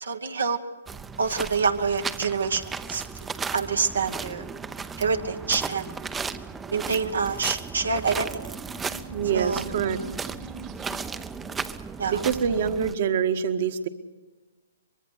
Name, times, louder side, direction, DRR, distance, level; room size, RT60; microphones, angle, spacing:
voice 1, 0.0-0.6 1.2-2.6 2.9-3.0 3.5-4.4 5.0-5.9 6.7-8.3 9.3-9.6 12.0-12.2, right 5 dB, 75° right, 6 dB, 1.3 m, -26 dB
sound 1, 0.9-12.9, right 5 dB, 10° right, 0.7 m, -35 dB
sound 2, 8.5-11.4, right 5 dB, 25° right, 1.4 m, -43 dB
voice 2, 9.1-10.0 12.1-13.9, right 7 dB, 50° right, 9 dB, 1.4 m, -25 dB
23.5 x 22.0 x 6.5 m, 1.3 s
figure-of-eight pair, 125°, 0 cm